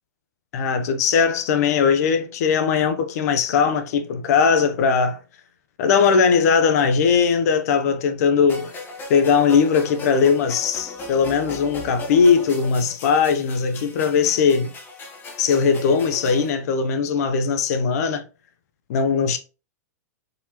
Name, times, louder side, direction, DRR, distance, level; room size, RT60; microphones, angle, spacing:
voice 1, 0.5-5.2 5.8-8.7 9.1-14.7 15.4-18.2 18.9-19.4, left 6 dB, 65° left, 0.8 m, -19 dB
sound 1, 8.5-16.5, left 2 dB, 20° left, 1.2 m, -37 dB
4.4 x 4.0 x 2.9 m
hypercardioid pair, 135°, 9 cm